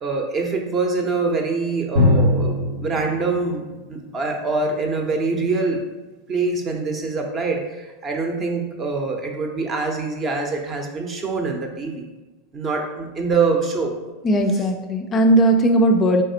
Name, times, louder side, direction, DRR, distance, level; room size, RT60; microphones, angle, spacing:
voice 1, 0.0-5.9 6.3-12.1 12.5-13.9, right 3 dB, 30° right, 3 dB, 0.6 m, -24 dB
Drum, 2.0-5.5, left 1 dB, 65° right, 0.8 m, -23 dB
voice 2, 14.2-16.2, right 1 dB, 30° left, 4 dB, 0.3 m, -17 dB
4.0 x 3.3 x 2.8 m, 1.2 s
supercardioid pair, 125°, 0 cm